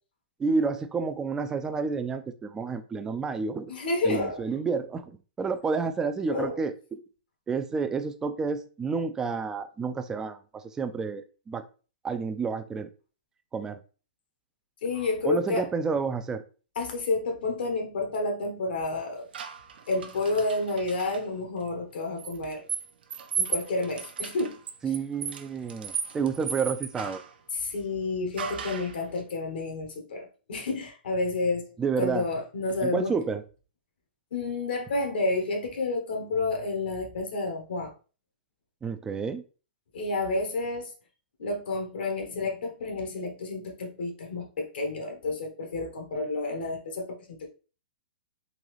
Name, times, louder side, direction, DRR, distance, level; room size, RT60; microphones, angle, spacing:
voice 1, 0.4-3.7 4.0-6.7 7.5-11.6 12.0-12.9 13.5-13.8 15.2-16.4 24.8-27.2 31.8-32.2 32.8-33.4 38.8-39.4, right 5 dB, 10° right, 0.3 m, -30 dB
voice 2, 3.7-4.4 6.3-6.6 14.8-15.7 16.7-19.3 19.9-22.6 23.4-24.6 27.5-31.7 32.0-33.1 34.3-37.9 39.9-40.9 41.4-47.4, left 3 dB, 75° left, 1.1 m, -30 dB
sound 1, 19.3-21.2 22.2-27.3 28.4-29.0, right 7 dB, 75° right, 0.7 m, -35 dB
3.9 x 2.9 x 3.1 m
hypercardioid pair, 150°, 5 cm